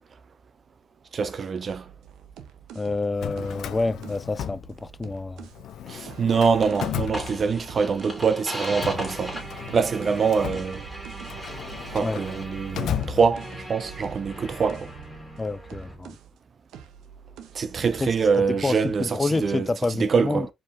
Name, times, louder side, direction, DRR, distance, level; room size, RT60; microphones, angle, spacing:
voice 1, 1.1-1.8 5.9-9.4 9.7-10.9 11.9-14.9 17.5-20.5, right 5 dB, 45° right, 0.6 m, -24 dB
sound 1, 1.7-5.7 6.0-8.4 8.7-16.4 16.7-19.1 19.3-19.7, right 8 dB, 85° right, 0.8 m, -47 dB
voice 2, 2.8-5.5 12.0-12.2 15.4-16.2 18.0-18.1 18.4-20.5, left 3 dB, 20° left, 0.3 m, -28 dB
Drawer open or close, 3.0-5.2 5.5-7.9 8.5-13.8, left 10 dB, 75° left, 0.5 m, -35 dB
sound 2, 6.6-15.9, right 1 dB, 15° right, 2.0 m, -38 dB
5.0 x 3.7 x 2.5 m
cardioid pair, 90°, 0 cm